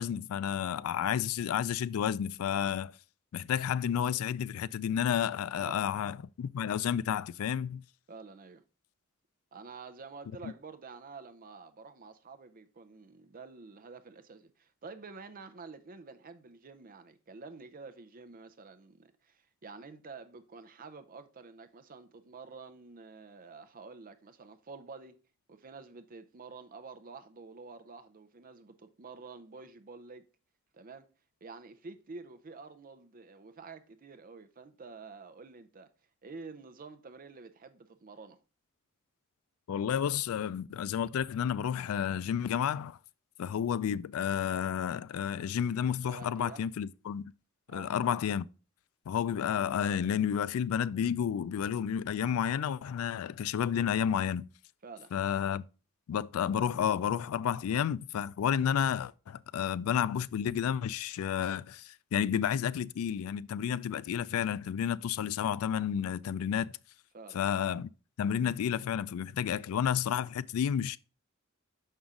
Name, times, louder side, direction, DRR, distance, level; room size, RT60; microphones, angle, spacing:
voice 1, 0.0-2.9 3.3-7.8 10.4-10.5 39.7-43.0 43.4-47.3 47.7-48.5 49.1-54.5 55.1-55.6 56.1-66.7 67.3-67.9 68.2-71.0, left 8 dB, 80° left, 0.3 m, -31 dB
voice 2, 8.1-8.6 9.5-25.2 25.5-30.2 30.7-31.1 31.4-35.9 36.2-38.4 46.1-46.6 47.7-47.9 54.8-55.1 67.1-67.4, right 4 dB, 40° right, 0.6 m, -49 dB
5.9 x 5.5 x 3.7 m
head